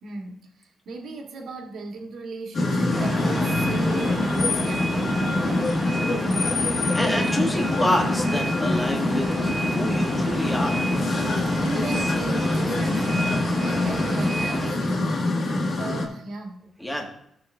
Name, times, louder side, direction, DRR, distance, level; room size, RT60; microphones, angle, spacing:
voice 1, 0.0-5.8 11.6-16.6, right 3 dB, 70° right, 1.7 m, -36 dB
sound 1, 2.5-16.1, left 2 dB, 55° left, 1.8 m, -24 dB
sound 2, 2.9-14.7, right 2 dB, 20° right, 0.9 m, -31 dB
voice 2, 6.9-10.9 16.8-17.1, left 1 dB, 10° left, 1.7 m, -28 dB
16.0 x 6.3 x 2.6 m
cardioid pair, 135°, 0 cm